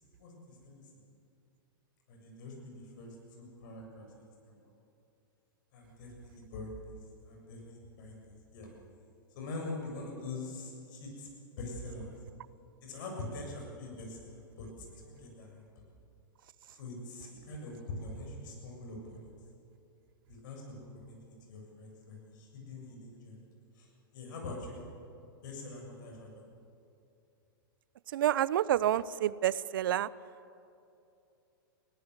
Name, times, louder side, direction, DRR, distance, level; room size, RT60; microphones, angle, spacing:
voice 1, 0.2-0.9 2.1-4.6 5.7-6.9 7.2-8.7 9.4-11.3 11.6-12.1 12.8-14.7 15.0-15.6 16.7-19.3 20.3-23.4 23.7-24.8 25.4-26.4, left 2 dB, 60° left, 1 dB, 7.3 m, -44 dB
voice 2, 28.1-30.1, right 11 dB, 70° right, 20 dB, 0.6 m, -28 dB
21.5 x 17.5 x 8.1 m, 2.7 s
hypercardioid pair, 110°, 12 cm